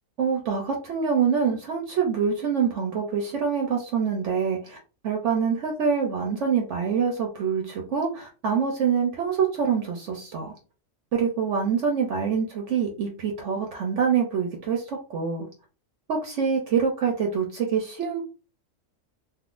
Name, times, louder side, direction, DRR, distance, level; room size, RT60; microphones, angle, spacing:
voice 1, 0.2-4.8 5.0-10.5 11.1-15.5 16.1-18.2, right 6 dB, 65° right, 1 dB, 0.9 m, -25 dB
3.6 x 2.5 x 2.4 m, 0.35 s
omnidirectional pair, 1.4 m